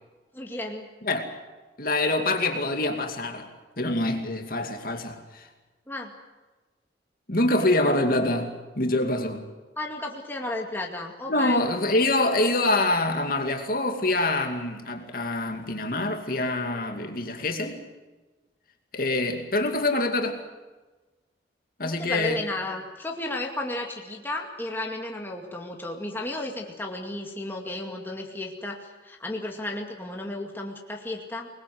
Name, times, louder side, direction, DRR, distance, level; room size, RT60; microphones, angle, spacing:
voice 1, 0.3-0.9 5.9-6.1 9.8-11.7 21.8-31.5, left 2 dB, 10° left, 2.3 m, -33 dB
voice 2, 1.8-3.5 3.8-5.5 7.3-9.4 11.3-17.8 18.9-20.4 21.8-22.4, left 2 dB, 50° left, 2.5 m, -25 dB
24.5 x 20.5 x 7.9 m
head